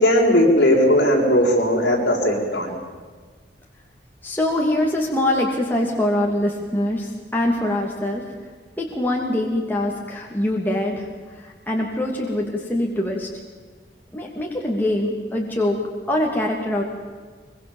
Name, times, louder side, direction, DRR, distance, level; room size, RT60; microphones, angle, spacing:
voice 1, 0.0-2.8, left 1 dB, 60° left, -1 dB, 6.9 m, -17 dB
voice 2, 4.2-8.2 8.8-13.3 14.1-15.8 16.1-16.8, left 1 dB, 10° left, -2 dB, 2.9 m, -23 dB
24.0 x 24.0 x 7.4 m, 1.5 s
head